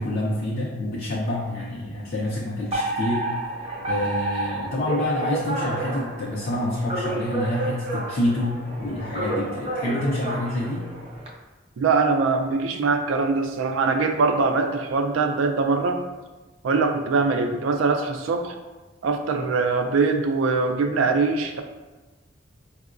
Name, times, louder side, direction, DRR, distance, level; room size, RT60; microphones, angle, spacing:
voice 1, 0.0-3.3 3.9-10.9, left 1 dB, 50° left, -3 dB, 0.4 m, -27 dB
Alarm, 2.7-11.3, right 2 dB, 30° right, 0.5 m, -30 dB
voice 2, 11.8-16.0 16.6-18.5 19.0-21.6, right 4 dB, 85° right, 6 dB, 0.3 m, -22 dB
4.4 x 2.0 x 2.4 m, 1.2 s
head